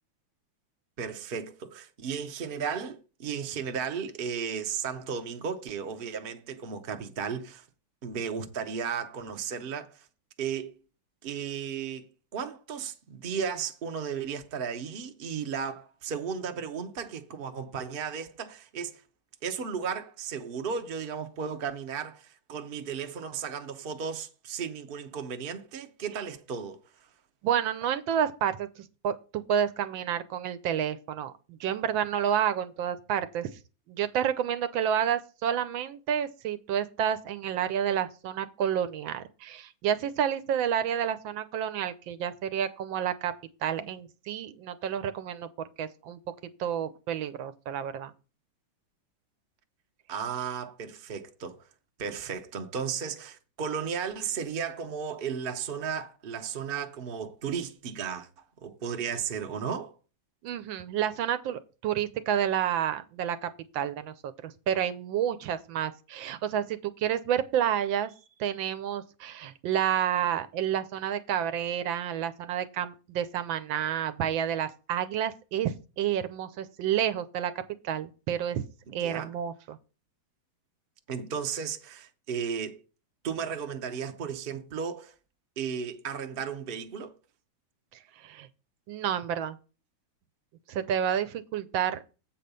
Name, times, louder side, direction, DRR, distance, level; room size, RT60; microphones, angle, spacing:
voice 1, 1.0-7.6 8.0-10.1 10.4-10.8 11.2-12.1 12.3-19.0 19.4-26.8 50.1-51.6 52.0-58.3 58.6-59.9 78.9-79.3 81.1-82.8 83.2-85.1 85.6-87.2, right 6 dB, 50° right, 0.6 m, -34 dB
voice 2, 27.4-33.5 33.9-43.3 43.6-45.5 45.8-46.2 46.6-48.1 60.4-68.1 68.4-77.5 77.8-78.6 78.9-79.8 88.2-88.5 88.9-89.6 90.7-92.1, right 9 dB, 80° right, 1.4 m, -30 dB
7.9 x 4.3 x 6.7 m
omnidirectional pair, 2.2 m